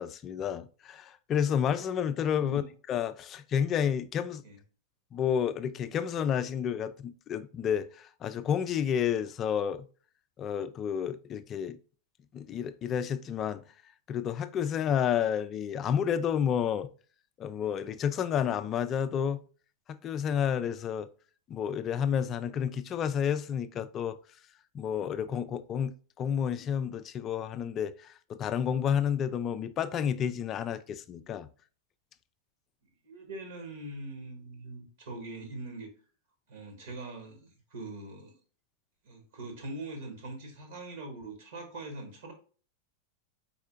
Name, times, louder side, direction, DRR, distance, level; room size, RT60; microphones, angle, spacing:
voice 1, 0.0-4.4 5.1-9.9 10.4-11.8 12.3-13.6 14.1-16.9 17.4-19.4 19.9-21.1 21.5-24.2 24.7-31.5, left 8 dB, 30° left, 0.3 m, -30 dB
voice 2, 2.3-2.7 4.4-4.6 33.0-35.9 36.5-38.3 39.0-42.3, right 2 dB, 60° right, 1.3 m, -42 dB
4.3 x 4.1 x 2.4 m
figure-of-eight pair, 90°, 0 cm